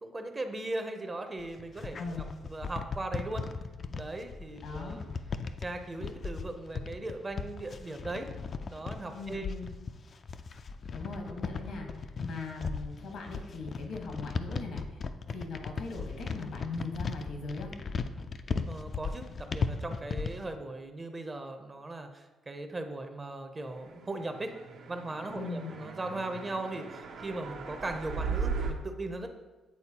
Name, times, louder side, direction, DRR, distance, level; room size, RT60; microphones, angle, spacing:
voice 1, 0.0-2.0 2.4-3.5 3.9-5.0 5.6-8.3 8.7-9.5 18.7-24.5 24.9-29.3, right 2 dB, 25° right, 6 dB, 0.6 m, -38 dB
sound 1, 1.4-20.5, left 5 dB, 45° left, 0.3 m, -37 dB
voice 2, 2.0-2.3 4.6-5.0 9.1-9.7 10.9-15.0 15.3-17.7 25.3-25.7, left 3 dB, 75° left, 2 dB, 1.2 m, -40 dB
sound 2, 24.2-28.7, right 5 dB, 70° right, 0.7 m, -37 dB
8.3 x 3.9 x 2.9 m, 1.1 s
cardioid pair, 90°, 0 cm